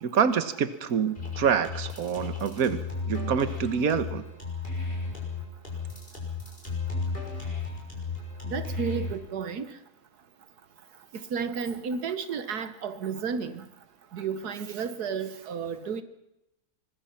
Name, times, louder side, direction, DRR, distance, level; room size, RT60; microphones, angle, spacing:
voice 1, 0.0-2.8 3.1-4.2, right 7 dB, 65° right, 11 dB, 1.7 m, -26 dB
sound 1, 1.2-9.2, left 4 dB, 35° left, 6.2 m, -34 dB
voice 2, 8.5-9.6 11.3-13.6 14.1-16.0, right 6 dB, 85° right, 11 dB, 1.7 m, -32 dB
25.5 x 20.5 x 5.8 m, 0.88 s
omnidirectional pair, 1.6 m